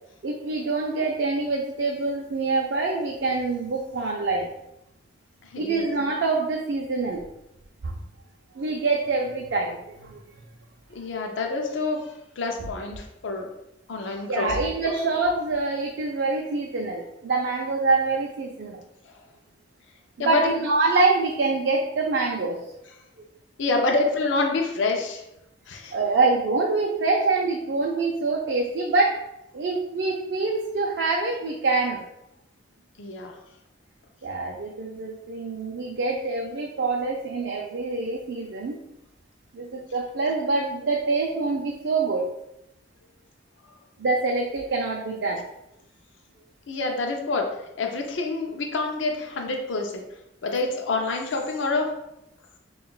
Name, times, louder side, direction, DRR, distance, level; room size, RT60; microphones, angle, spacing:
voice 1, 0.2-4.5 5.6-7.2 7.8-7.9 8.6-10.2 14.3-18.8 20.2-22.6 25.9-29.2 29.5-32.0 34.2-38.8 39.5-42.3 44.0-45.4, right 3 dB, 65° right, 0 dB, 0.4 m, -25 dB
voice 2, 5.4-5.8 10.9-13.5 13.9-14.6 19.1-19.2 20.2-20.5 23.6-25.2 25.7-25.9 33.0-33.3 46.7-50.0 50.4-52.0, left 3 dB, 70° left, 2 dB, 0.5 m, -27 dB
5.7 x 2.3 x 2.3 m, 0.84 s
head